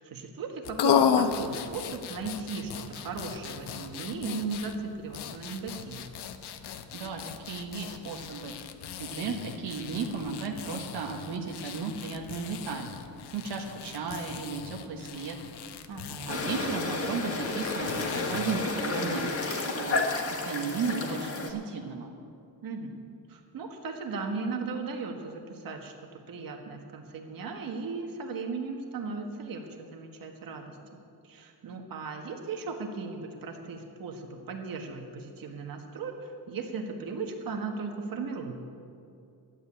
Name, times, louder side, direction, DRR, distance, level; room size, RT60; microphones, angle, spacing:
voice 1, 0.0-6.1 15.9-16.4 22.6-23.0 23.3-25.9 26.3-31.0 31.2-38.5, right 4 dB, 55° right, 3 dB, 1.6 m, -37 dB
sound 1, 0.6-19.5, left 8 dB, 80° left, 0.9 m, -35 dB
voice 2, 6.9-8.5 9.0-12.9 13.3-15.4 16.3-20.0 20.4-22.1, right 5 dB, 75° right, 1 dB, 1.4 m, -35 dB
sound 2, 16.3-21.5, left 3 dB, 35° left, 1.6 m, -31 dB
12.0 x 8.6 x 8.9 m, 2.5 s
cardioid pair, 135°, 40 cm